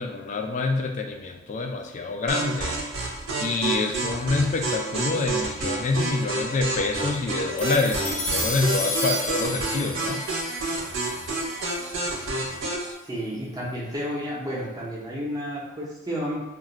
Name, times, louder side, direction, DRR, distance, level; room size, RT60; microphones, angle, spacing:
voice 1, 0.0-2.8 3.4-10.3, left 3 dB, 35° left, 4 dB, 0.3 m, -26 dB
sound 1, 2.3-12.9, right 2 dB, 65° right, 0.7 m, -29 dB
sound 2, 7.6-12.1, left 1 dB, 65° left, 0.7 m, -32 dB
voice 2, 13.0-16.4, equal, 20° right, -5 dB, 0.6 m, -31 dB
2.3 x 2.2 x 3.8 m, 1.0 s
head